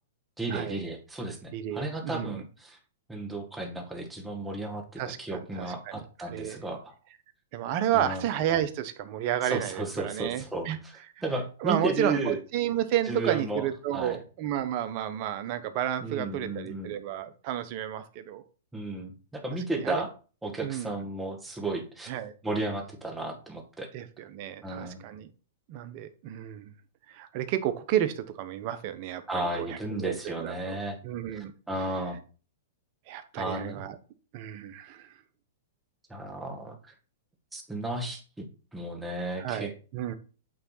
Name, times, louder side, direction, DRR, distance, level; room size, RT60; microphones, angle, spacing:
voice 1, 0.4-2.8 3.1-6.9 7.9-8.2 9.4-12.4 13.1-13.6 13.9-14.2 16.0-16.9 18.7-20.1 20.4-22.1 22.4-23.9 24.6-25.0 29.3-31.0 31.7-32.2 33.4-33.8 36.1-36.9 37.5-38.5 38.7-39.7, right 2 dB, 10° right, 2 dB, 1.7 m, -34 dB
voice 2, 1.5-2.4 5.0-6.6 7.5-10.8 11.6-18.4 19.7-20.1 20.6-20.9 22.1-22.3 23.9-25.3 25.7-26.7 27.1-30.8 31.0-31.5 33.1-34.0 34.3-35.1 39.4-40.1, right 11 dB, 45° right, 10 dB, 0.9 m, -31 dB
8.9 x 3.5 x 4.1 m, 0.36 s
hypercardioid pair, 125°, 0 cm